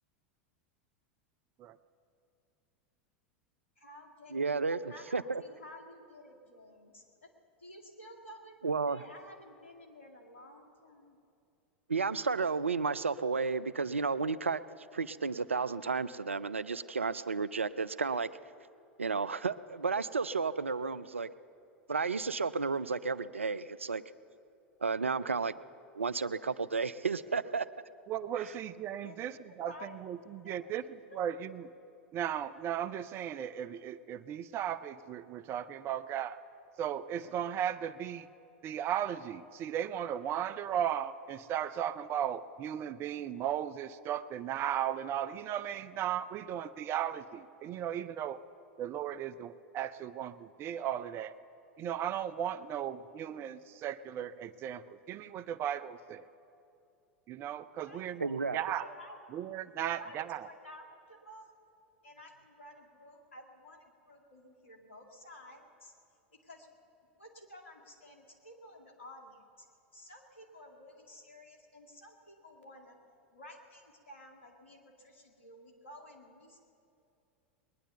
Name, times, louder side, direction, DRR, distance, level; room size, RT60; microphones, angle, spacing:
voice 1, 3.8-4.3 4.9-7.3 7.6-8.5 8.9-11.2 29.0-30.1 30.4-30.7 31.1-31.2 57.7-58.0 58.6-59.2 59.8-61.5 62.0-65.9 66.4-66.7 67.2-69.7 69.9-73.0 73.3-76.6, left 1 dB, 80° left, 2 dB, 2.1 m, -53 dB
voice 2, 4.3-4.8 5.1-5.4 8.6-9.0 11.9-14.6 14.9-18.3 19.0-21.3 21.9-24.0 24.8-25.5 25.9-27.7 58.2-58.6, right 4 dB, 90° right, 16 dB, 0.4 m, -32 dB
voice 3, 28.1-31.7 32.1-36.4 36.8-38.3 38.6-48.4 48.8-51.3 51.8-56.3 57.3-58.9 59.3-60.5, right 10 dB, 40° right, 14 dB, 0.6 m, -36 dB
20.5 x 10.0 x 6.8 m, 2.6 s
figure-of-eight pair, 90°, 7 cm